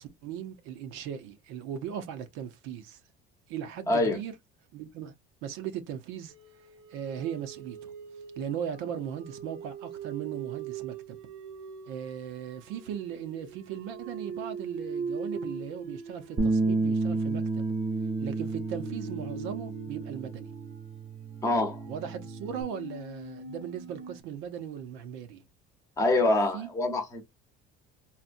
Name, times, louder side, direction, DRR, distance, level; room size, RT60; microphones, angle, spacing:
voice 1, 0.0-3.0 3.5-4.3 4.7-5.1 5.4-6.3 6.9-7.9 8.4-11.2 11.9-17.6 18.2-20.5 21.9-25.4 26.5-26.7, right 9 dB, 90° right, 0.7 m, -38 dB
voice 2, 3.9-4.2 21.4-21.8 26.0-27.2, left 2 dB, 15° left, 0.8 m, -25 dB
sound 1, 6.3-24.2, right 5 dB, 65° right, 0.9 m, -42 dB
Bass guitar, 16.4-22.6, right 3 dB, 20° right, 0.7 m, -31 dB
4.1 x 2.2 x 2.5 m
cardioid pair, 180°, 20 cm